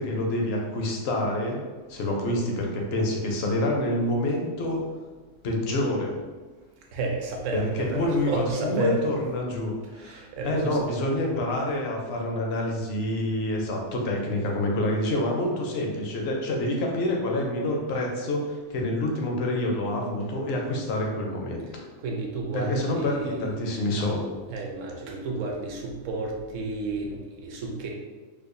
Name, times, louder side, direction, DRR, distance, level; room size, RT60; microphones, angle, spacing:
voice 1, 0.0-1.6 1.9-4.8 5.4-6.2 7.5-7.6 7.9-8.3 8.6-21.8 22.5-24.2, left 1 dB, 60° left, 0 dB, 0.7 m, -27 dB
voice 2, 6.8-9.0 9.8-10.9 21.7-23.5 24.5-27.9, right 3 dB, 65° right, 0 dB, 0.9 m, -32 dB
4.7 x 2.3 x 2.6 m, 1.4 s
omnidirectional pair, 1.6 m